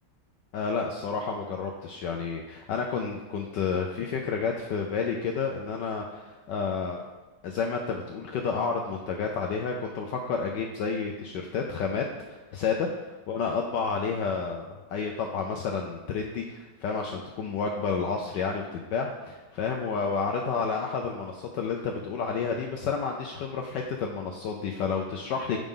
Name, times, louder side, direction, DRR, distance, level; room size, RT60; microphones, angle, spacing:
voice 1, 0.5-7.0 7.4-25.6, left 5 dB, 70° left, 2 dB, 1.1 m, -30 dB
7.7 x 5.0 x 3.7 m, 1.2 s
omnidirectional pair, 2.2 m